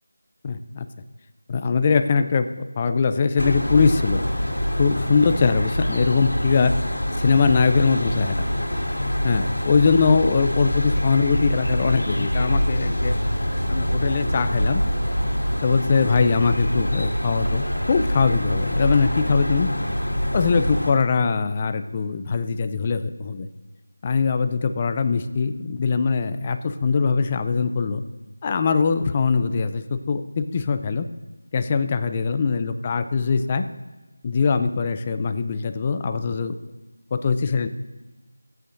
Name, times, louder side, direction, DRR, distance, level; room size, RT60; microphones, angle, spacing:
voice 1, 0.4-0.9 1.5-2.5 2.8-4.2 4.7-6.7 7.2-8.5 9.2-13.1 13.7-14.8 15.6-19.7 20.3-23.5 24.0-28.0 28.4-31.1 31.5-33.6 34.2-36.6 37.1-37.7, left 5 dB, 20° left, 9 dB, 0.4 m, -22 dB
sound 1, 3.4-20.9, equal, 85° left, 2.3 m, -25 dB
24.0 x 8.3 x 2.6 m, 1.2 s
figure-of-eight pair, 170°, 0 cm